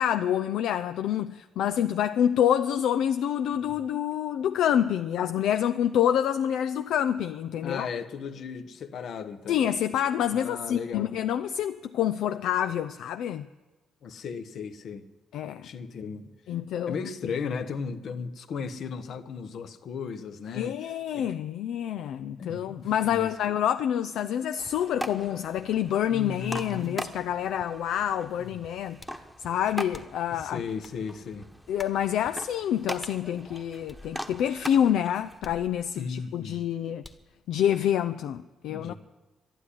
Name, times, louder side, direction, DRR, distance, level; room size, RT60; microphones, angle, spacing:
voice 1, 0.0-7.9 9.5-13.5 15.3-15.7 16.5-17.0 20.6-29.0 29.4-30.6 31.7-37.0 37.5-38.9, left 10 dB, 80° left, 0.5 m, -27 dB
voice 2, 7.6-9.6 10.3-11.2 14.0-15.1 15.6-16.3 16.9-20.7 21.1-21.3 22.4-23.3 26.1-27.0 28.4-28.6 30.3-31.5 36.0-36.6 38.7-38.9, left 5 dB, 65° left, 1.1 m, -36 dB
sound 1, 24.6-35.4, equal, ahead, 1.1 m, -41 dB
sound 2, 29.0-29.3 29.9-30.3 30.8-31.0 31.8-32.0 33.0-33.2 33.9-34.5 35.4-36.1 37.0-37.3, left 2 dB, 25° left, 1.5 m, -48 dB
12.5 x 11.5 x 10.0 m
cardioid pair, 90°, 0 cm